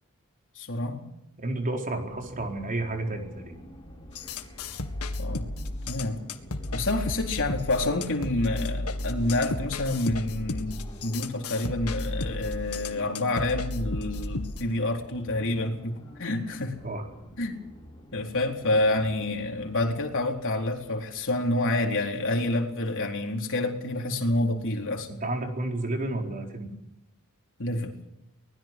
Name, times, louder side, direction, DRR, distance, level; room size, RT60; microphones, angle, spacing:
voice 1, 0.6-1.1 5.2-5.5 5.9-6.2 6.7-16.8 17.4-17.6 18.1-25.1 27.6-27.9, left 2 dB, 60° left, 1 dB, 4.1 m, -28 dB
voice 2, 1.4-3.6 16.8-17.1 25.1-26.7, right 2 dB, 40° right, 2 dB, 4.5 m, -31 dB
sound 1, 2.1-21.3, equal, 20° left, 4.7 m, -48 dB
sound 2, 4.2-14.6, left 2 dB, 90° left, 2.0 m, -33 dB
24.5 x 20.0 x 6.2 m, 0.88 s
head